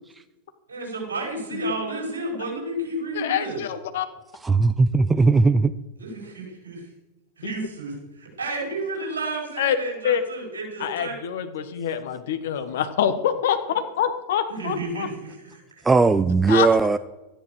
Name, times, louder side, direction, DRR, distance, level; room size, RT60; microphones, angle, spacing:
voice 1, 0.7-3.6 6.0-6.9 7.4-11.2 14.5-15.8, right 2 dB, 70° right, -1 dB, 5.3 m, -31 dB
voice 2, 3.1-4.1 7.4-7.5 9.6-9.8 10.0-10.2 10.8-15.1 16.5-16.7, left 9 dB, 55° left, 9 dB, 1.3 m, -25 dB
voice 3, 4.4-5.7 15.8-17.0, right 4 dB, 10° right, 13 dB, 0.5 m, -18 dB
13.5 x 10.5 x 6.5 m, 1.0 s
figure-of-eight pair, 90°, 0 cm